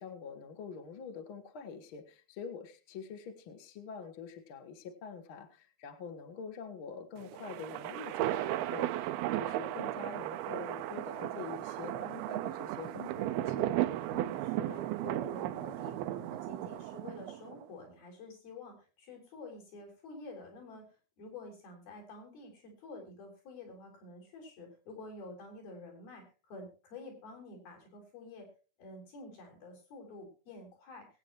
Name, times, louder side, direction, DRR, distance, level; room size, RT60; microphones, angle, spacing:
voice 1, 0.0-13.8, left 6 dB, 50° left, 5 dB, 1.6 m, -46 dB
sound 1, 7.2-17.6, right 14 dB, 85° right, 2.6 m, -35 dB
voice 2, 14.1-20.9 21.2-28.5 28.8-31.1, left 2 dB, 70° left, 1 dB, 6.1 m, -49 dB
21.5 x 9.0 x 3.1 m, 0.35 s
omnidirectional pair, 4.3 m